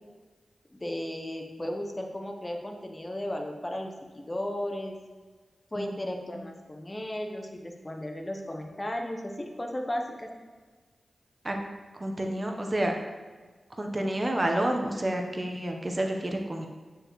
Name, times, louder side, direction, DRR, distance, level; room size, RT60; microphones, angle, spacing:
voice 1, 0.7-4.9 5.7-10.3, left 1 dB, 25° left, 3 dB, 0.8 m, -35 dB
voice 2, 5.8-6.4 11.4-11.6 11.9-12.9 13.8-16.7, right 1 dB, 35° right, 3 dB, 0.9 m, -30 dB
8.6 x 4.7 x 3.1 m, 1.4 s
cardioid pair, 45°, 0 cm